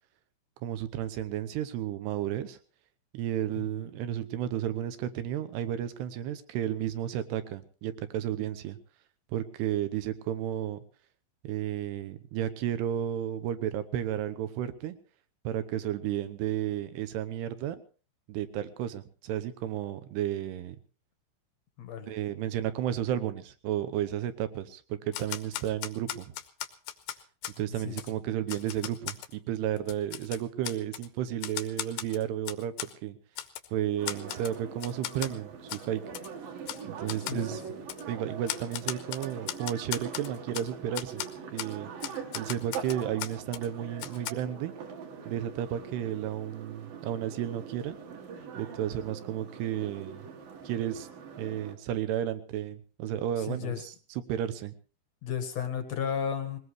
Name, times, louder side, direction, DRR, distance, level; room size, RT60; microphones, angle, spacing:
voice 1, 0.6-2.6 3.1-8.8 9.3-10.8 11.4-15.0 15.4-17.8 18.3-20.8 22.1-26.3 27.6-33.2 33.7-36.0 36.9-37.6 38.1-41.2 41.5-41.9 42.3-44.7 45.3-48.0 48.6-50.3 50.6-51.1 51.4-54.7, right 11 dB, 75° right, 11 dB, 2.8 m, -33 dB
voice 2, 21.8-22.1 27.8-28.0 37.3-37.6 53.4-53.8 55.2-56.6, left 8 dB, 60° left, 6 dB, 1.9 m, -33 dB
Typewriter, 25.1-27.6 28.0-28.1 28.5-29.3 29.8-31.1 31.4-32.9 33.4-33.7 34.1-34.6 34.8-35.3 35.7-35.8 36.1-36.3 36.7-36.8 37.1-37.4 37.9-38.0 38.5-40.7 40.9-41.3 41.6-41.7 42.0-43.7 44.0-44.3, left 13 dB, 75° left, 3.1 m, -37 dB
sound 1, 34.0-51.8, right 6 dB, 55° right, 3.4 m, -43 dB
21.0 x 19.0 x 3.2 m, 0.36 s
omnidirectional pair, 5.4 m